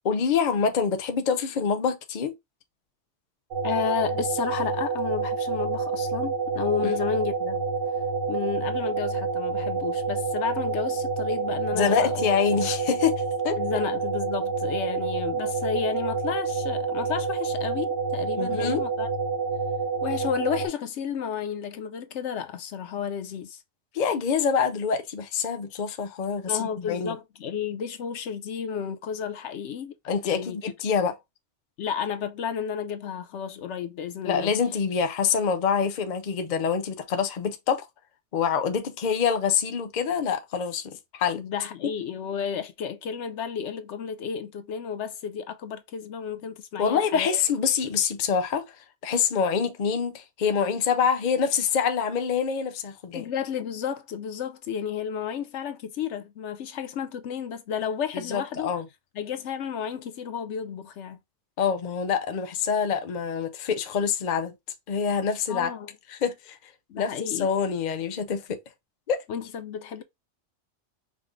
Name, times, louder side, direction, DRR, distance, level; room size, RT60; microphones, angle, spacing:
voice 1, 0.0-2.3 6.8-6.9 11.7-13.6 18.4-18.8 23.9-27.1 30.0-31.1 34.2-37.9 38.3-41.4 46.8-48.6 49.0-53.2 58.1-58.8 61.6-64.5 64.9-65.7 66.1-66.6 67.0-68.6 69.1-69.2, left 6 dB, 45° left, 0.7 m, -26 dB
sound 1, 3.5-20.7, right 5 dB, 55° right, 1.2 m, -28 dB
voice 2, 3.6-7.6 8.3-12.2 13.6-19.1 20.0-23.6 26.5-29.9 30.2-30.6 31.8-34.5 41.3-47.3 53.1-58.7 59.1-61.2 65.5-65.9 66.9-67.5 69.3-70.0, left 7 dB, 75° left, 0.9 m, -32 dB
5.0 x 2.0 x 3.7 m
omnidirectional pair, 1.2 m